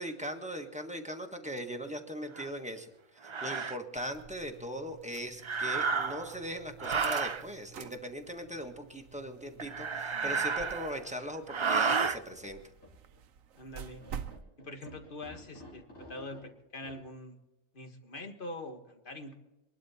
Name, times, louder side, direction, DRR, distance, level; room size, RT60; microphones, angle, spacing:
voice 1, 0.0-2.9 3.2-12.6, equal, 5° right, 4 dB, 1.4 m, -39 dB
sound 1, 2.4-2.5 3.2-3.8 5.4-6.3 6.8-7.4 9.6-11.1 11.5-12.2, right 5 dB, 50° right, 0.3 m, -31 dB
sound 2, 4.0-14.4, right 9 dB, 90° right, 1.1 m, -49 dB
sound 3, 11.2-11.5 11.8-12.4 12.8-12.9 13.2-13.3 14.0-16.4 16.8-17.0, left 1 dB, 75° left, 5.3 m, -52 dB
voice 2, 13.5-14.0 14.6-15.8 16.1-17.4 17.7-19.4, left 1 dB, 40° left, 5 dB, 1.8 m, -44 dB
22.5 x 12.0 x 4.3 m, 0.99 s
omnidirectional pair, 1.4 m